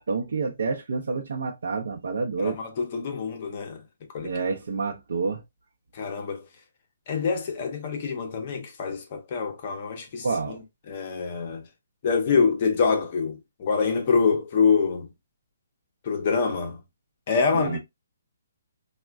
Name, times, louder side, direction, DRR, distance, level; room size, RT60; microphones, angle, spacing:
voice 1, 0.0-2.6 4.2-5.4 10.2-10.6 17.5-17.8, right 4 dB, 70° right, 0.6 m, -28 dB
voice 2, 2.4-3.8 4.1-4.3 5.9-6.5 7.1-11.6 12.0-15.1 16.0-16.8 17.3-17.8, left 5 dB, 30° left, 0.5 m, -25 dB
3.5 x 2.1 x 2.3 m
hypercardioid pair, 175°, 0 cm